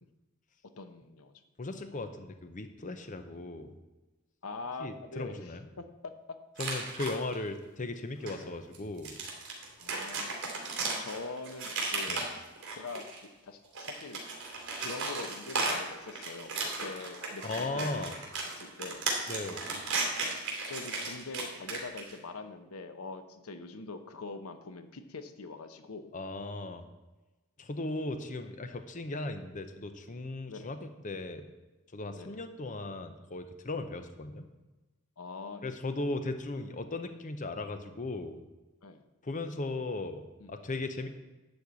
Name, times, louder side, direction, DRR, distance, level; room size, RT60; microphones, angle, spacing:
voice 1, 0.8-1.3 4.4-6.1 7.2-7.4 8.4-8.5 9.8-10.4 11.0-12.2 12.7-13.0 13.4-14.2 14.8-16.5 16.8-18.1 18.5-19.0 20.7-26.1 28.7-28.8 30.5-30.7 32.2-32.4 35.2-35.8 38.8-39.0 40.4-40.5, left 3 dB, 90° left, 8 dB, 0.9 m, -43 dB
voice 2, 1.6-3.8 4.8-5.6 6.6-9.1 12.1-12.2 17.4-18.1 19.3-19.6 26.1-26.8 27.6-31.5 31.9-34.5 35.6-38.4 39.2-41.1, left 2 dB, 35° left, 8 dB, 0.7 m, -37 dB
sound 1, 6.6-7.4 8.2-8.3 8.7-13.2 13.6-22.2, right 3 dB, 60° right, 3.0 m, -35 dB
11.5 x 4.4 x 8.2 m, 1.1 s
head